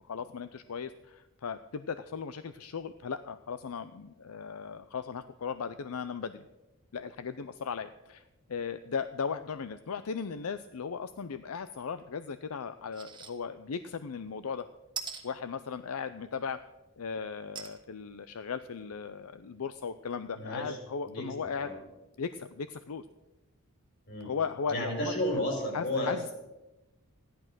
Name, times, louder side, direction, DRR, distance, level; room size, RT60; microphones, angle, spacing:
voice 1, 0.0-6.5 6.9-8.2 8.5-14.7 15.2-16.6 17.0-21.7 22.2-23.0 24.2-25.1 25.7-26.3, left 6 dB, 80° left, 11 dB, 0.5 m, -37 dB
sound 1, 12.9-13.3 13.7-13.8 15.0-15.2 17.5-17.8 18.4-18.5 18.7-18.8, right 6 dB, 20° right, 1.6 m, -40 dB
voice 2, 20.3-20.8 21.0-21.8 24.1-24.3 24.7-26.3, left 1 dB, 50° left, 2 dB, 4.9 m, -33 dB
15.0 x 11.0 x 6.1 m, 0.99 s
head